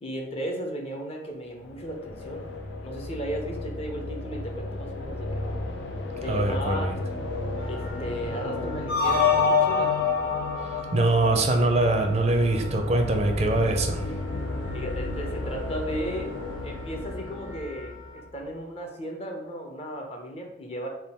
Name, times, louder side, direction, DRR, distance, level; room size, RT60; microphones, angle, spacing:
voice 1, 0.0-2.5 2.8-5.5 6.2-6.9 7.7-9.9 14.7-16.3 16.6-20.9, right 1 dB, 35° left, 2 dB, 0.6 m, -35 dB
sound 1, 1.5-18.5, left 2 dB, 90° left, 0.5 m, -34 dB
voice 2, 6.2-6.9 10.9-14.0, right 2 dB, 35° right, 4 dB, 0.4 m, -23 dB
Wind instrument woodwind instrument, 7.5-18.2, left 1 dB, 50° left, 1.3 m, -45 dB
sound 2, 8.9-12.0, left 5 dB, 75° left, 1.2 m, -24 dB
3.6 x 2.3 x 4.2 m, 0.84 s
head